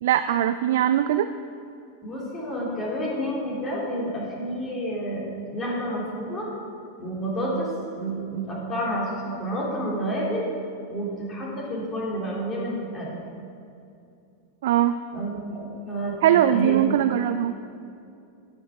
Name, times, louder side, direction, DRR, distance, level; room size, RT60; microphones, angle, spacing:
voice 1, 0.0-1.3 14.6-15.0 16.2-17.5, right 11 dB, 55° right, 11 dB, 0.3 m, -21 dB
voice 2, 2.0-5.2 5.5-6.5 7.0-7.7 8.0-10.4 10.9-13.2 15.1-16.8, right 1 dB, 20° left, -4 dB, 3.0 m, -29 dB
13.0 x 6.2 x 6.0 m, 2.6 s
figure-of-eight pair, 90°, 0 cm